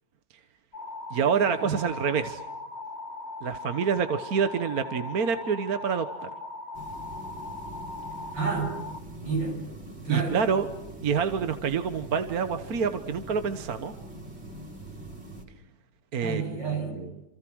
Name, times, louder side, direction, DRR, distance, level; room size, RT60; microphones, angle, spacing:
sound 1, 0.7-9.0, left 2 dB, 35° left, 2.2 m, -39 dB
voice 1, 1.1-2.4 3.4-6.3 10.1-10.7 11.0-13.9 16.1-16.4 16.9-17.1, right 6 dB, 55° right, 9 dB, 1.5 m, -27 dB
sound 2, 6.7-15.5, right 1 dB, 35° right, 4.1 m, -43 dB
voice 2, 8.3-8.8 9.2-9.6 10.0-10.4 16.2-17.0, right 5 dB, 70° right, 2 dB, 8.5 m, -29 dB
28.5 x 27.5 x 6.3 m, 0.97 s
omnidirectional pair, 2.0 m